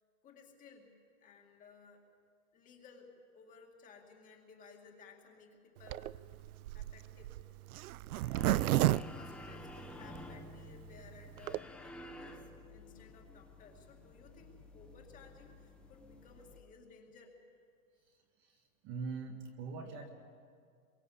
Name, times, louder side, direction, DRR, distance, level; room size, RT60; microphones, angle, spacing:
voice 1, 0.2-2.0 2.5-6.4 6.7-7.4 8.1-17.4, left 4 dB, 20° left, 2 dB, 2.1 m, -58 dB
Zipper (clothing), 5.8-10.2 10.7-10.8 10.9-11.0 11.2-11.6, right 15 dB, 80° right, 0.6 m, -32 dB
sound 1, 8.4-16.6, left 2 dB, ahead, 0.9 m, -51 dB
voice 2, 18.8-20.1, right 4 dB, 25° right, 4 dB, 1.6 m, -42 dB
26.0 x 23.5 x 7.1 m, 2.2 s
supercardioid pair, 170°, 43 cm